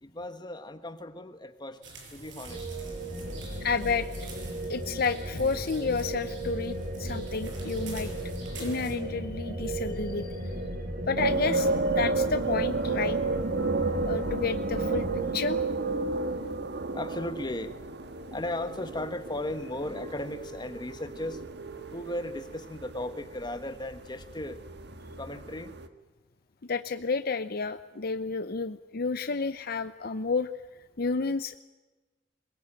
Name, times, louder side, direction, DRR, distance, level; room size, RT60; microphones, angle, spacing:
voice 1, 0.0-1.8 2.1-2.7 9.7-9.8 13.6-14.3 16.0-21.4 21.9-24.6 25.2-25.7, left 1 dB, 25° left, 9 dB, 1.5 m, -37 dB
sound 1, 1.8-8.9, right 3 dB, 85° right, 7.1 m, -46 dB
sound 2, 2.4-15.3, right 1 dB, 45° right, 2.4 m, -36 dB
voice 2, 3.6-4.1 4.7-8.2 8.6-10.4 11.1-13.2 14.1-15.6 26.6-30.5 31.0-31.6, left 4 dB, 55° left, 11 dB, 0.7 m, -31 dB
sound 3, 11.2-25.9, right 3 dB, 65° right, 1.6 m, -32 dB
22.0 x 22.0 x 9.0 m, 1.2 s
head